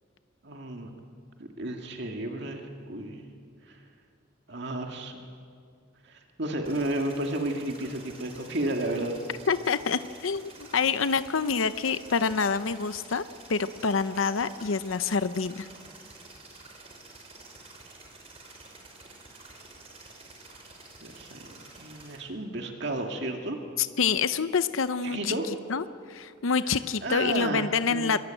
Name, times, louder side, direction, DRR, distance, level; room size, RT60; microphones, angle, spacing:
voice 1, 0.4-0.9 1.4-3.2 3.7-3.8 4.5-5.2 6.0-9.2 21.0-23.6 25.0-25.5 27.0-28.1, right 1 dB, 55° right, 3 dB, 2.1 m, -32 dB
sound 1, 6.6-22.2, right 3 dB, 30° right, 4.8 m, -49 dB
voice 2, 9.5-13.2 13.5-15.7 23.8-25.3 25.7-25.8 26.1-28.2, left 5 dB, 80° left, 12 dB, 0.7 m, -27 dB
24.0 x 23.0 x 9.0 m, 2.3 s
head